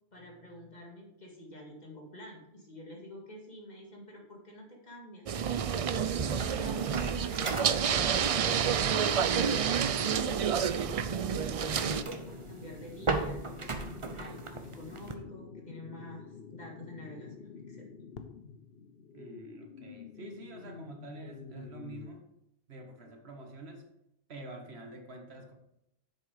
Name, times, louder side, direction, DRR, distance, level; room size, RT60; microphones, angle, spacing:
voice 1, 0.1-5.3 5.9-8.6 9.2-17.9, equal, 45° left, 0 dB, 2.1 m, -48 dB
sound 1, 5.3-12.0, right 7 dB, 60° right, 0.4 m, -29 dB
sound 2, 5.9-15.1, right 3 dB, 30° right, 0.8 m, -38 dB
sound 3, 9.7-22.1, left 6 dB, 70° left, 1.0 m, -48 dB
voice 2, 19.1-22.2 22.7-23.9 24.3-25.5, right 2 dB, 80° right, 3 dB, 1.7 m, -47 dB
8.0 x 6.6 x 4.9 m, 0.84 s
omnidirectional pair, 1.1 m